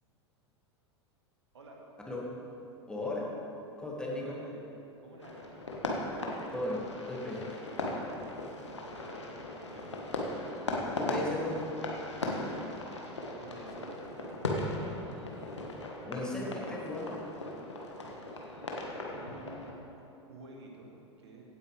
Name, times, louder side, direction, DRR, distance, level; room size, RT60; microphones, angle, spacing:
voice 1, 2.9-3.3 3.8-4.4 6.5-7.6 11.0-11.6 16.1-17.2, left 2 dB, 5° left, -3 dB, 2.1 m, -36 dB
voice 2, 4.2-4.6 5.0-5.6 8.5-9.2 9.5-9.9 11.0-11.6 13.4-15.2 19.1-21.5, right 2 dB, 70° right, -1 dB, 2.0 m, -51 dB
sound 1, 5.2-19.7, left 2 dB, 75° left, 1.5 m, -38 dB
16.5 x 8.8 x 3.4 m, 2.9 s
figure-of-eight pair, 85°, 15 cm